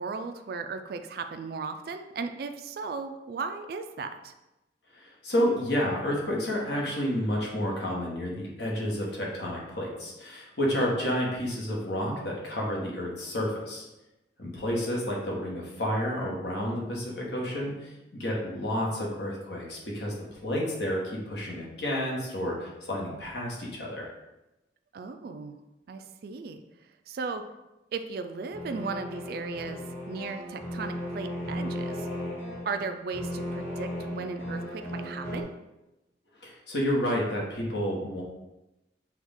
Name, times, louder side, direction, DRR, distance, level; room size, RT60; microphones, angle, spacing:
voice 1, 0.0-4.3 24.9-25.6 25.9-26.6 27.1-27.4 27.9-32.1 32.6-35.5, right 4 dB, 55° right, 7 dB, 0.3 m, -36 dB
voice 2, 4.9-13.8 14.4-20.1 20.4-24.1 36.4-38.2, equal, 70° left, -3 dB, 1.2 m, -30 dB
sound 1, 28.5-35.4, equal, 15° left, 1.1 m, -36 dB
6.0 x 2.4 x 3.6 m, 0.98 s
head